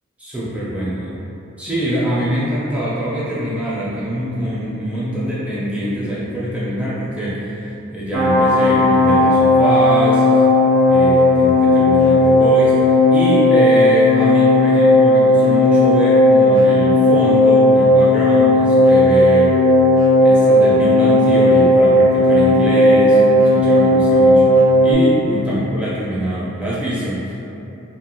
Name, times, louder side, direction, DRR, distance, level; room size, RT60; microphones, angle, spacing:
voice 1, 0.2-1.1 1.6-10.4 10.9-19.5 20.2-27.3, right 1 dB, 5° right, -9 dB, 0.4 m, -24 dB
sound 1, 8.1-24.9, left 1 dB, 85° right, 0.4 m, -13 dB
3.0 x 2.7 x 2.3 m, 2.8 s
head